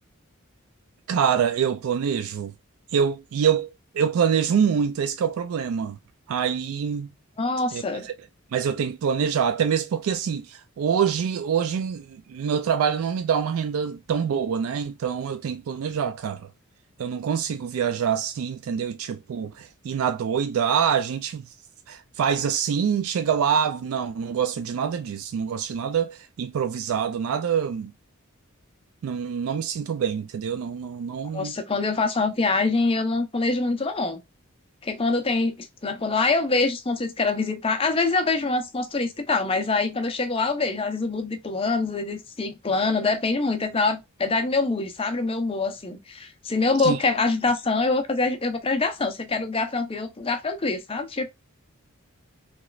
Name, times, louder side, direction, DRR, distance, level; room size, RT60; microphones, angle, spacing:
voice 1, 1.1-2.5 2.9-3.7 3.9-6.0 6.3-7.1 7.7-8.1 8.5-16.5 17.0-21.4 21.9-27.9 29.0-31.5 46.8-47.0, right 7 dB, 80° right, 0.3 m, -25 dB
voice 2, 7.4-8.1 31.3-34.2 34.8-51.3, left 3 dB, 25° left, 0.5 m, -25 dB
3.1 x 3.0 x 2.3 m
head